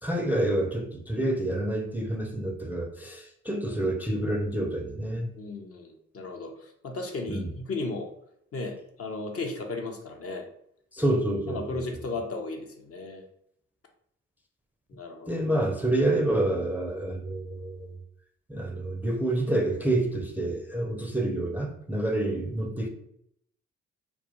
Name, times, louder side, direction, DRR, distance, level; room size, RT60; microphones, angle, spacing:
voice 1, 0.0-5.3 7.3-7.5 10.9-11.9 15.3-18.0 18.5-22.9, right 1 dB, 5° right, 0.4 m, -28 dB
voice 2, 5.4-8.1 8.5-10.5 11.5-13.2 14.9-15.4, left 3 dB, 40° left, 0.6 m, -35 dB
2.3 x 2.2 x 2.9 m
hypercardioid pair, 40°, 35 cm